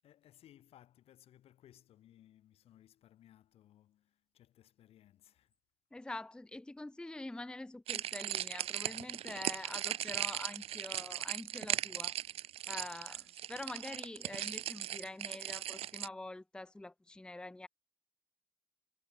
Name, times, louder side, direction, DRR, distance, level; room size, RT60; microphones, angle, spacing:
voice 1, 0.0-5.5 12.8-13.1, left 12 dB, 85° left, 7.1 m, -63 dB
voice 2, 5.9-12.1 12.7-17.7, left 2 dB, 10° left, 0.6 m, -45 dB
sound 1, 7.9-16.1, right 12 dB, 85° right, 1.0 m, -38 dB
cardioid pair, 85°, 10 cm